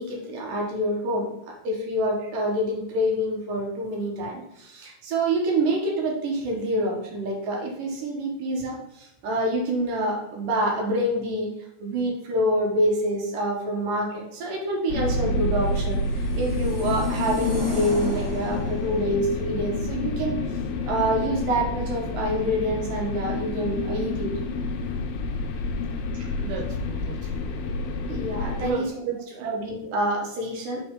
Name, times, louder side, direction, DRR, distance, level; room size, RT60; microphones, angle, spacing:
voice 1, 0.0-11.5 11.8-20.4 20.9-24.3 26.1-26.3 28.1-28.8 29.4-30.8, right 1 dB, 65° right, -1 dB, 2.6 m, -27 dB
sound 1, 14.9-28.7, left 2 dB, 80° left, 2.3 m, -28 dB
sound 2, 15.8-19.0, right 1 dB, 40° right, 1.0 m, -40 dB
voice 2, 26.3-27.5 28.6-29.5, right 6 dB, 80° right, -1 dB, 1.6 m, -34 dB
6.2 x 5.9 x 3.7 m, 0.79 s
omnidirectional pair, 4.9 m